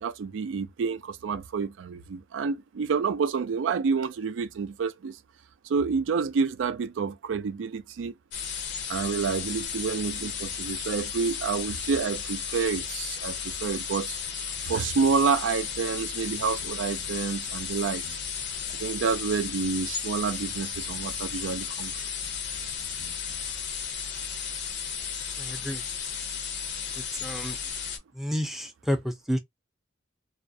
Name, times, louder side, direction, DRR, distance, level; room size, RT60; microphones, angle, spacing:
voice 1, 0.0-5.2 5.6-8.1 8.9-14.2 14.6-18.2 18.8-22.0, right 5 dB, 85° right, 0.4 m, -29 dB
sound 1, 8.3-28.0, left 7 dB, 65° left, 0.5 m, -34 dB
Bass guitar, 14.1-14.8 15.3-15.4 15.6-17.2 18.0-19.6 20.4-21.5 21.8-23.7, left 2 dB, 90° left, 0.9 m, -53 dB
voice 2, 25.4-25.8 27.2-27.6 28.1-29.4, equal, ahead, 0.4 m, -30 dB
2.3 x 2.0 x 2.6 m
head